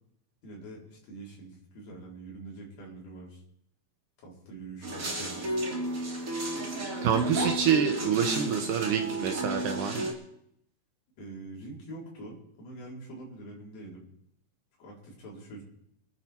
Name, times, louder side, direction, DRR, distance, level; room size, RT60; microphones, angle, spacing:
voice 1, 0.4-3.4 4.2-5.7 7.2-7.5 11.2-14.0 14.8-15.6, right 2 dB, 55° left, -3 dB, 5.9 m, -44 dB
sound 1, 4.8-10.1, right 1 dB, 25° right, 1.9 m, -32 dB
voice 2, 7.0-10.1, right 8 dB, 75° right, 6 dB, 1.9 m, -27 dB
25.5 x 9.7 x 4.5 m, 0.74 s
omnidirectional pair, 4.9 m